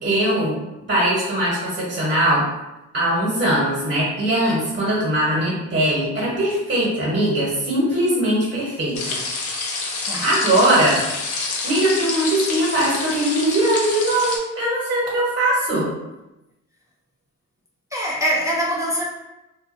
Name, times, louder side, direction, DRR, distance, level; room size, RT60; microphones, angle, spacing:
voice 1, 0.0-0.5 0.9-2.4 2.9-9.2 10.2-11.0 11.6-15.9, right 1 dB, 40° right, -5 dB, 1.0 m, -20 dB
sound 1, 8.9-14.4, left 3 dB, 70° left, 0.6 m, -28 dB
voice 2, 17.9-19.0, equal, 10° right, -5 dB, 0.4 m, -23 dB
2.4 x 2.2 x 2.5 m, 0.97 s
cardioid pair, 90°, 30 cm